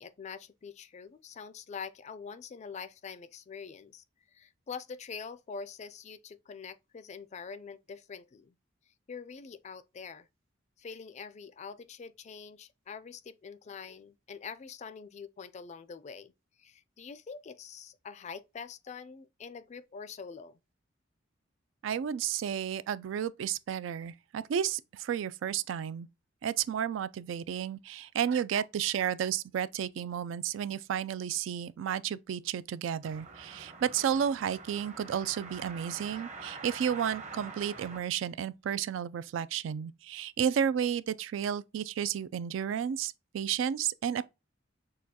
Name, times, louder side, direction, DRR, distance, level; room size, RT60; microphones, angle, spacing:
voice 1, 0.0-4.0 4.3-8.5 9.1-10.3 10.8-16.3 16.6-20.6, left 5 dB, 35° left, 0.3 m, -45 dB
voice 2, 21.8-26.1 26.4-44.3, right 8 dB, 75° right, 0.3 m, -32 dB
sound 1, 33.0-38.0, right 4 dB, 40° right, 0.9 m, -46 dB
6.5 x 2.3 x 2.7 m
head